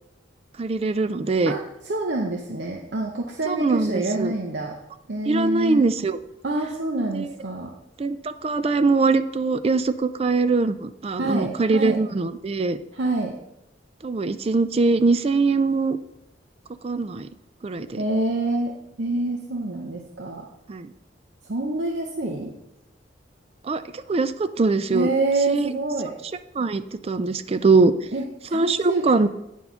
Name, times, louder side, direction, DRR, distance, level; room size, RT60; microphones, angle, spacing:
voice 1, 0.6-1.5 3.5-4.3 5.3-6.2 7.1-7.3 8.0-12.8 14.0-16.0 16.8-17.3 17.6-18.0 20.7-20.9 23.6-25.1 25.5-25.7 26.5-27.9 28.5-29.3, right 3 dB, 30° right, 12 dB, 0.4 m, -22 dB
voice 2, 1.5-4.8 5.1-5.8 6.4-7.7 11.2-12.0 12.9-13.4 18.0-18.7 19.0-20.5 21.5-22.5 24.9-26.1 28.1-29.1, right 2 dB, 65° right, 1 dB, 0.8 m, -26 dB
9.4 x 4.6 x 5.6 m, 0.85 s
head